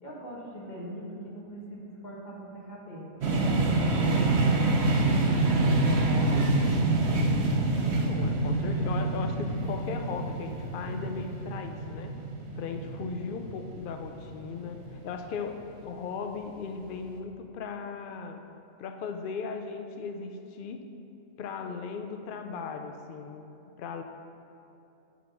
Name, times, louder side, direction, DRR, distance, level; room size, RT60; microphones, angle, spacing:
voice 1, 0.0-3.1 3.4-4.4 5.1-6.8, equal, 30° left, -5 dB, 1.7 m, -41 dB
sound 1, 3.2-15.0, right 2 dB, 55° right, 1.0 m, -26 dB
voice 2, 7.8-12.2 12.6-18.4 18.8-20.8 21.4-23.4 23.8-24.0, left 5 dB, 85° left, 5 dB, 0.4 m, -37 dB
9.3 x 4.0 x 6.0 m, 2.8 s
omnidirectional pair, 1.5 m